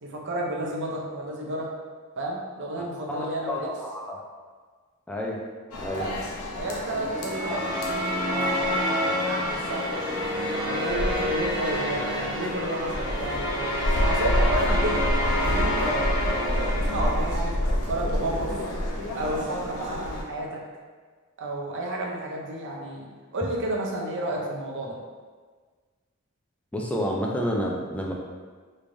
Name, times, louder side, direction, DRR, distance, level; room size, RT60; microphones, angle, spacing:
voice 1, 0.0-1.7 2.2-3.7 5.9-6.2 6.6-7.7 8.3-9.9 10.6-13.7 14.0-15.0 15.4-17.6 17.9-18.6 19.1-20.6 21.4-25.0, right 1 dB, 55° right, -2 dB, 0.6 m, -31 dB
voice 2, 3.1-4.2 5.1-5.5 5.8-6.1 6.9-7.1 26.7-28.1, equal, 5° left, -2 dB, 0.4 m, -30 dB
sound 1, 5.7-20.2, equal, 85° left, 0.6 m, -29 dB
sound 2, 7.1-17.5, left 1 dB, 40° left, 1.3 m, -29 dB
3.5 x 3.2 x 2.6 m, 1.5 s
head